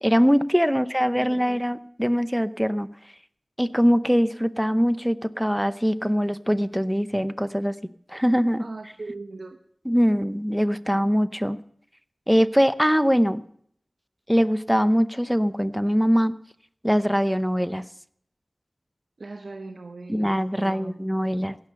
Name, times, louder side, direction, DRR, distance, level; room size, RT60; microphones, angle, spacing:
voice 1, 0.0-2.9 3.6-7.7 8.1-8.6 9.9-11.6 12.3-13.4 14.3-16.3 16.8-17.9 20.1-21.6, equal, ahead, 14 dB, 0.7 m, -22 dB
voice 2, 1.2-1.5 8.6-9.6 19.2-21.5, right 3 dB, 80° right, 6 dB, 1.1 m, -40 dB
16.0 x 11.5 x 6.7 m, 0.66 s
wide cardioid pair, 40°, 0 cm